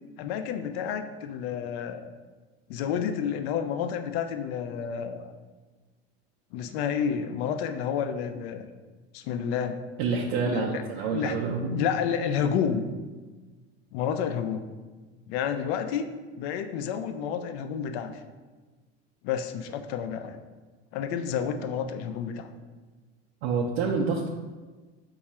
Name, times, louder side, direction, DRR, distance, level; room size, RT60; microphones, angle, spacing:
voice 1, 0.2-2.1 2.7-5.3 6.5-8.7 9.1-9.8 10.4-10.8 11.1-11.3 11.7-12.8 13.9-14.6 15.3-16.1 16.4-18.1 19.2-20.4 20.9-22.5, left 7 dB, 75° left, 8 dB, 0.5 m, -30 dB
voice 2, 10.0-11.8 23.4-24.3, right 4 dB, 80° right, -1 dB, 0.5 m, -27 dB
3.6 x 2.3 x 4.1 m, 1.3 s
supercardioid pair, 105°, 32 cm